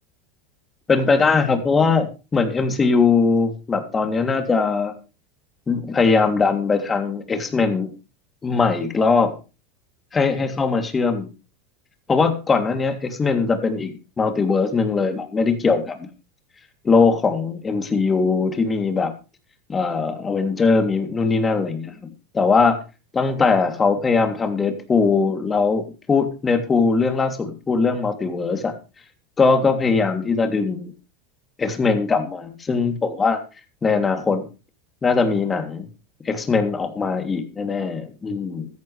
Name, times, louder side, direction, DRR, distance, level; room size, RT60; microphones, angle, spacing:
voice 1, 0.9-4.9 5.7-7.9 8.4-9.3 10.1-11.3 12.1-16.1 16.8-19.1 19.7-22.8 23.1-28.7 29.4-30.9 31.6-33.4 33.8-34.5 35.0-35.9 36.2-38.7, left 4 dB, 20° left, 6 dB, 3.1 m, -20 dB
15.5 x 13.5 x 3.4 m, 0.32 s
hypercardioid pair, 85°, 0 cm